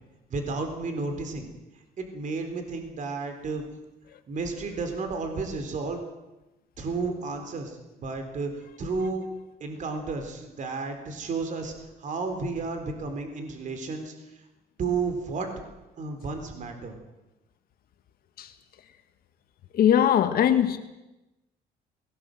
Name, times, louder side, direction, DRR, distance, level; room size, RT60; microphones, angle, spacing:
voice 1, 0.3-1.5 2.0-3.6 4.3-6.0 6.8-9.3 9.6-11.7 12.0-14.4 14.8-15.5 16.0-17.0, right 4 dB, 50° right, 6 dB, 3.9 m, -32 dB
voice 2, 19.7-20.8, left 9 dB, 60° left, 7 dB, 1.7 m, -20 dB
20.5 x 18.0 x 7.8 m, 1.0 s
cardioid pair, 110°, 17 cm